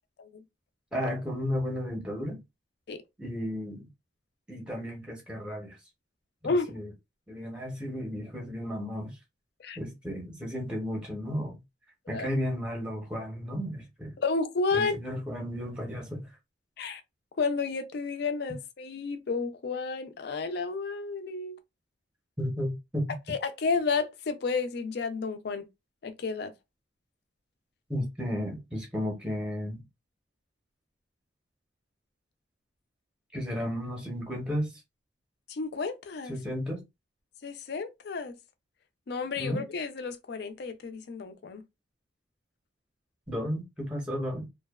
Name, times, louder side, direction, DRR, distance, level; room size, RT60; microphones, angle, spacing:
voice 1, 0.9-2.4 3.2-3.8 4.5-5.8 6.4-6.9 7.3-9.2 9.8-11.6 12.1-14.1 14.7-16.2 22.4-23.1 27.9-29.8 33.3-34.8 36.3-36.8 39.4-39.6 43.3-44.5, equal, 5° right, 0.6 m, -33 dB
voice 2, 14.2-15.0 16.8-17.0 17.4-21.6 23.3-25.7 26.0-26.5 35.5-36.4 37.4-38.4 39.1-41.6, left 4 dB, 55° left, 0.4 m, -31 dB
2.6 x 2.1 x 2.2 m
head